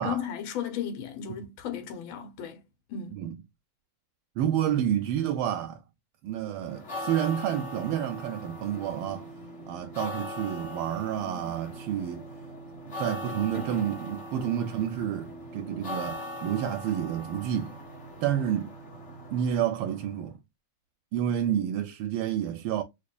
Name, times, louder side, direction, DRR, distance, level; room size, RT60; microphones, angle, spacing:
voice 1, 0.0-2.6 2.9-3.2, left 8 dB, 75° left, 1.6 m, -35 dB
voice 2, 4.4-5.8 6.2-9.3 9.7-12.3 12.9-17.8 18.2-18.7 19.3-20.4 21.1-22.8, right 10 dB, 85° right, 1.4 m, -29 dB
sound 1, 6.6-20.2, left 1 dB, 35° left, 1.6 m, -40 dB
4.9 x 2.4 x 2.3 m
omnidirectional pair, 2.3 m